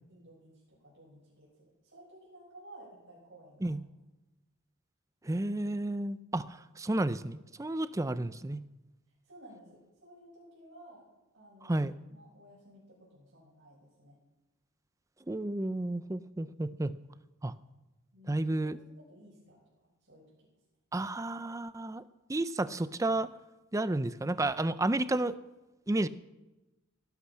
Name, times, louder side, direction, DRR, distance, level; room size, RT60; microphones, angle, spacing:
voice 1, 0.1-3.8 8.1-8.3 9.2-11.1 11.3-11.8 12.1-14.2 18.1-20.5, right 1 dB, 65° right, -7 dB, 6.5 m, -55 dB
voice 2, 5.2-6.5 6.8-8.6 11.6-11.9 15.3-16.9 17.4-17.5 18.3-18.8 20.9-22.0 22.3-23.3 23.7-25.4 25.9-26.1, right 2 dB, 15° right, 15 dB, 0.5 m, -31 dB
18.0 x 12.0 x 5.7 m, 1.0 s
head